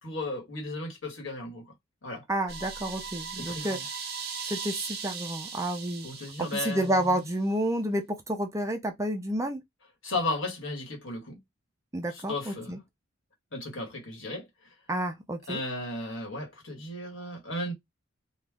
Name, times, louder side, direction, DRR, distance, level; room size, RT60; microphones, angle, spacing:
voice 1, 0.0-1.7 2.0-2.2 3.4-3.8 6.0-7.0 10.0-11.4 12.1-12.8 13.5-14.7 15.5-17.7, left 2 dB, 70° left, 1.6 m, -35 dB
voice 2, 2.3-3.8 4.5-6.1 6.4-9.6 11.9-12.8 14.9-15.6, right 1 dB, 15° right, 0.6 m, -30 dB
sound 1, 2.5-7.3, right 5 dB, 55° right, 1.0 m, -39 dB
3.1 x 2.5 x 3.6 m
head